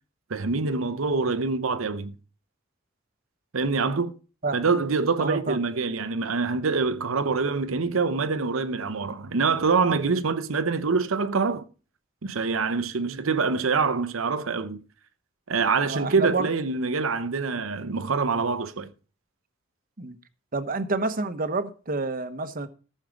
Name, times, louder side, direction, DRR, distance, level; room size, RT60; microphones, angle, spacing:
voice 1, 0.3-2.2 3.5-4.1 4.5-11.6 12.2-14.8 15.5-18.9, right 4 dB, 90° right, 0.8 m, -25 dB
voice 2, 5.2-5.6 13.1-13.3 15.8-16.5 20.0-20.2 20.5-22.7, right 3 dB, 45° right, 1.0 m, -29 dB
14.5 x 6.5 x 5.1 m
head